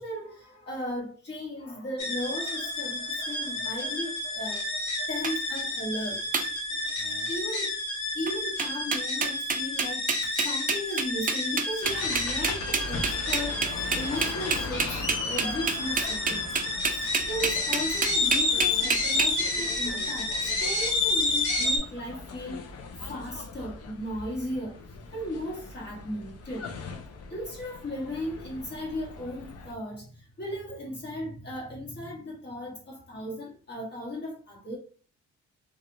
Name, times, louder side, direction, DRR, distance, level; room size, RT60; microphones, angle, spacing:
voice 1, 0.0-6.2 7.3-7.7 8.1-16.5 16.9-22.6 23.1-24.8 25.1-26.7 27.3-34.8, left 1 dB, 35° left, 1.3 m, -36 dB
sound 1, 2.0-21.8, left 2 dB, 80° left, 1.0 m, -30 dB
sound 2, 5.2-5.3 6.3-6.5 7.0-7.3 8.3-8.4 8.6-19.3, right 5 dB, 30° right, 0.4 m, -28 dB
sound 3, 11.8-29.7, left 3 dB, 55° left, 0.6 m, -40 dB
2.4 x 2.4 x 3.0 m
cardioid pair, 90°, 30 cm